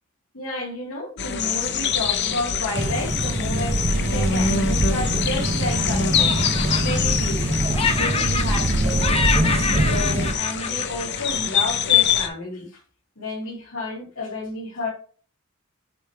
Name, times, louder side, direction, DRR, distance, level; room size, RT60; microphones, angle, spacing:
voice 1, 0.3-6.4 6.8-7.5 7.9-12.8 13.2-14.9, left 2 dB, 85° left, -6 dB, 2.5 m, -31 dB
sound 1, 1.2-12.3, left 7 dB, 55° left, 0.9 m, -25 dB
sound 2, 2.7-10.3, right 1 dB, 30° right, 0.6 m, -23 dB
Laughter, 4.6-5.8 6.1-7.5 7.7-8.8 9.0-11.6, left 5 dB, 30° left, 0.9 m, -27 dB
8.8 x 4.7 x 3.4 m, 0.40 s
head